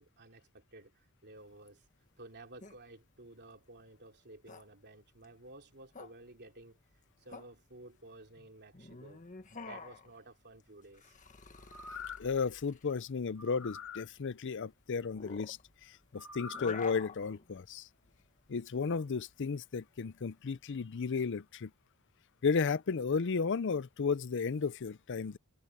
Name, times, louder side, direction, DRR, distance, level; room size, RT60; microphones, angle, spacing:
voice 1, 0.0-1.8 2.2-6.8 7.2-9.2 9.6-11.2, right 2 dB, 50° right, 3.1 m, -54 dB
sound 1, 1.4-20.6, left 4 dB, 35° left, 1.6 m, -50 dB
sound 2, 11.6-12.4 13.4-14.1 16.2-16.8 17.3-17.4, left 6 dB, 75° left, 2.4 m, -45 dB
voice 2, 12.2-17.9 18.5-21.7 22.4-25.4, left 5 dB, 55° left, 0.5 m, -34 dB
head